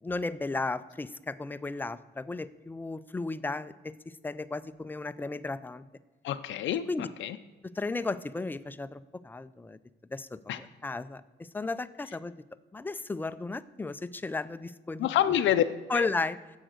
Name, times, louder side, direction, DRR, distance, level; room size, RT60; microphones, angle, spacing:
voice 1, 0.0-5.8 6.9-7.1 7.7-9.8 10.1-12.3 12.7-15.1 15.9-16.4, left 3 dB, 10° left, 13 dB, 0.3 m, -34 dB
voice 2, 6.2-7.4 10.5-10.6 15.0-15.6 15.9-16.1, left 11 dB, 75° left, 9 dB, 0.5 m, -27 dB
10.0 x 7.9 x 6.5 m, 1.3 s
cardioid pair, 145°, 20 cm